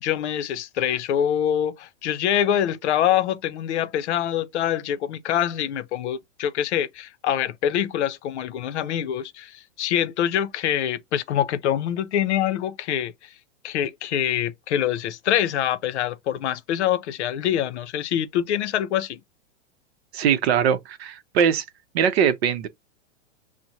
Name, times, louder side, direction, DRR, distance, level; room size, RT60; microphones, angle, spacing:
voice 1, 0.0-13.1 13.6-19.2, left 10 dB, 65° left, 0.6 m, -25 dB
voice 2, 20.1-21.6 21.9-22.7, right 8 dB, 55° right, 0.7 m, -21 dB
5.9 x 2.1 x 2.7 m
supercardioid pair, 160°, 37 cm